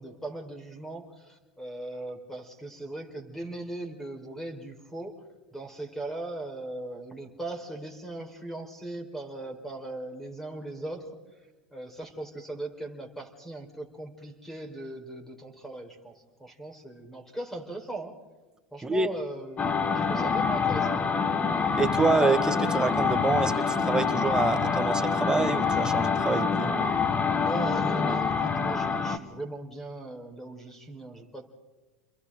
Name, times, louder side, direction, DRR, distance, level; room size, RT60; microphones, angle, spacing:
voice 1, 0.0-5.2 5.5-11.2 11.7-18.2 18.7-21.1 27.4-31.5, right 2 dB, 5° left, 5 dB, 4.5 m, -39 dB
sound 1, 19.6-29.2, left 5 dB, 20° left, 1.5 m, -26 dB
voice 2, 21.8-26.7, right 4 dB, 10° right, 7 dB, 1.6 m, -27 dB
29.5 x 23.0 x 3.8 m, 1.2 s
supercardioid pair, 120°, 7 cm